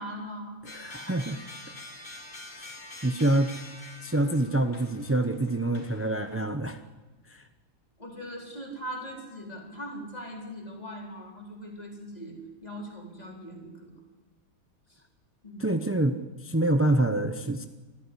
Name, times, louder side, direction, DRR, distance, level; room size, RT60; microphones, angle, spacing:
voice 1, 0.0-0.6 8.0-13.9 14.9-15.0 15.4-15.7, equal, 20° left, 0 dB, 4.3 m, -40 dB
sound 1, 0.7-6.5, left 1 dB, 45° left, 3.0 m, -46 dB
voice 2, 0.7-1.4 2.6-2.7 3.0-3.5 4.0-6.8 7.3-7.4 15.6-17.6, right 1 dB, 20° right, 8 dB, 0.3 m, -26 dB
23.5 x 13.5 x 9.9 m, 1.3 s
omnidirectional pair, 1.9 m